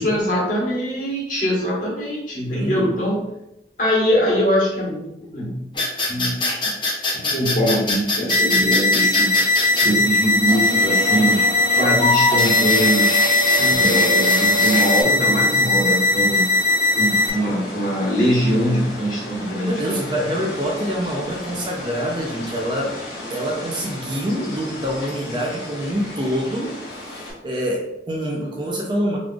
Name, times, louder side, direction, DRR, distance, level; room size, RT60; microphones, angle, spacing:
voice 1, 0.0-3.2 3.8-5.6 6.1-6.4 7.1-9.4 9.8-11.4 11.7-13.2 13.6-16.4 17.0-20.0, equal, 45° left, -6 dB, 1.3 m, -22 dB
voice 2, 2.5-2.9 13.6-14.1 19.7-22.9 23.3-29.2, equal, 25° right, -1 dB, 0.5 m, -26 dB
sound 1, 5.7-9.9 10.5-15.0, left 2 dB, 25° left, 0.7 m, -23 dB
sound 2, 8.3-17.3, left 2 dB, 85° right, 0.6 m, -19 dB
sound 3, 9.2-27.3, left 1 dB, 80° left, 1.2 m, -36 dB
3.9 x 3.1 x 2.4 m, 0.86 s
head